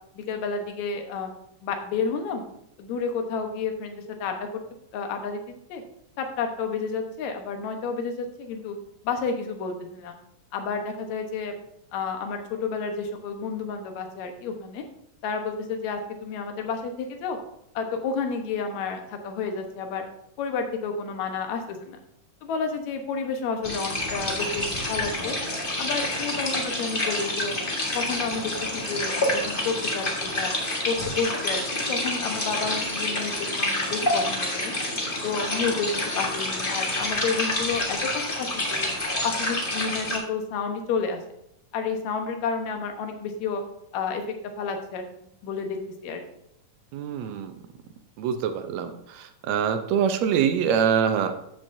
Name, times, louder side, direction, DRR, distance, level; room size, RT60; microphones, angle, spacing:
voice 1, 0.2-1.3 1.6-2.4 2.8-4.6 4.9-5.8 6.2-8.8 9.0-10.2 10.5-11.6 11.9-14.8 15.2-17.4 17.8-20.0 20.4-22.0 22.4-25.4 25.8-27.6 27.9-30.5 30.9-34.7 35.2-35.9 36.1-38.9 39.2-41.2 41.7-43.6 43.9-45.0 45.4-45.8 46.0-46.2, left 5 dB, 65° left, 5 dB, 2.3 m, -30 dB
sound 1, 23.6-40.2, left 1 dB, 35° left, 0.8 m, -28 dB
voice 2, 46.9-47.5 48.2-51.3, right 8 dB, 80° right, 8 dB, 1.6 m, -24 dB
13.5 x 7.4 x 2.7 m, 0.76 s
omnidirectional pair, 3.8 m